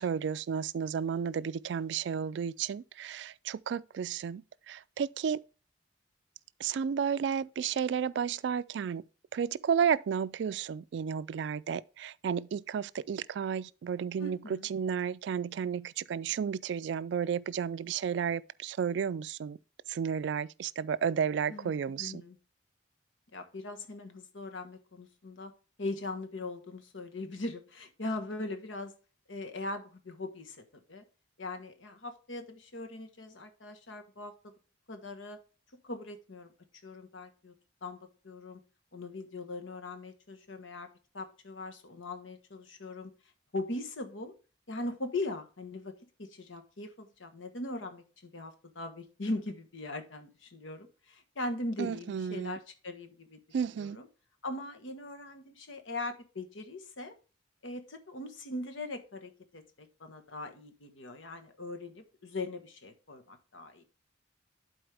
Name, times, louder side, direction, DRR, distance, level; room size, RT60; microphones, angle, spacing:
voice 1, 0.0-5.4 6.6-9.0 9.3-19.6 19.9-22.2 51.8-52.6 53.5-54.0, right 7 dB, 65° right, 0.3 m, -32 dB
voice 2, 14.2-14.7 21.5-21.7 22.0-22.4 23.3-25.5 25.8-28.9 29.3-31.0 31.4-34.5 34.9-35.4 35.8-36.5 36.8-37.5 37.8-38.6 38.9-40.9 41.1-43.1 43.5-44.3 44.7-45.9 46.2-53.4 53.8-54.1 54.4-57.1 57.6-63.8, left 2 dB, 85° left, 1.3 m, -40 dB
11.5 x 4.3 x 3.4 m
head